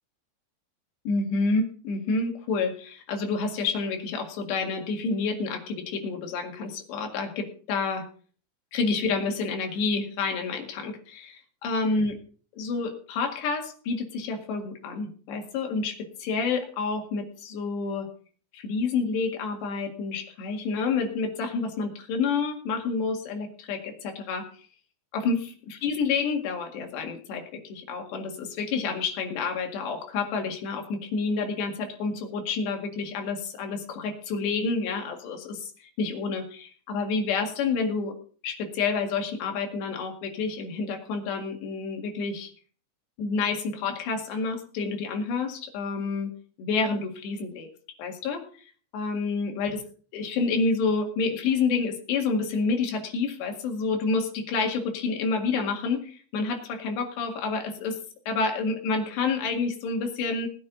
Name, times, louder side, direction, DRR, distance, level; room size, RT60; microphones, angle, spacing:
voice 1, 1.1-8.0 8.7-11.4 11.6-12.2 12.5-18.1 18.5-24.5 25.1-38.1 38.4-42.5 43.2-46.3 46.6-47.7 48.0-48.7 48.9-49.8 50.1-58.0 58.3-60.5, left 4 dB, 90° left, 3 dB, 4.2 m, -29 dB
19.5 x 9.7 x 3.9 m, 0.43 s
omnidirectional pair, 4.8 m